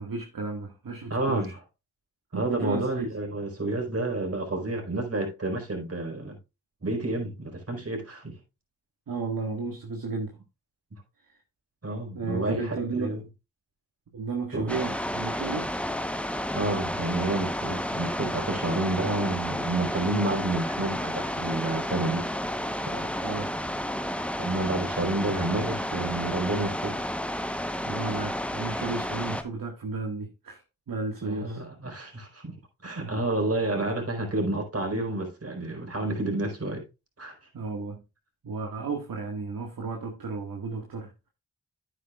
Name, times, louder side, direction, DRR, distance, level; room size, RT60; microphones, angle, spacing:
voice 1, 0.0-1.6 2.3-3.1 9.1-10.4 11.3-11.4 12.1-13.2 14.1-15.7 23.2-23.5 27.8-31.9 32.8-33.2 37.5-38.0 38.4-41.3, right 4 dB, 60° right, 1.9 m, -34 dB
voice 2, 1.1-1.5 2.3-6.4 6.8-8.4 10.9-11.0 11.8-13.2 14.5-14.7 16.5-22.3 22.7-23.1 24.4-27.0 31.2-32.6 32.8-36.8 37.2-37.4, right 2 dB, 40° right, 4.6 m, -30 dB
sound 1, 14.7-29.4, equal, 5° left, 1.0 m, -31 dB
10.5 x 8.9 x 2.4 m
supercardioid pair, 40°, 38 cm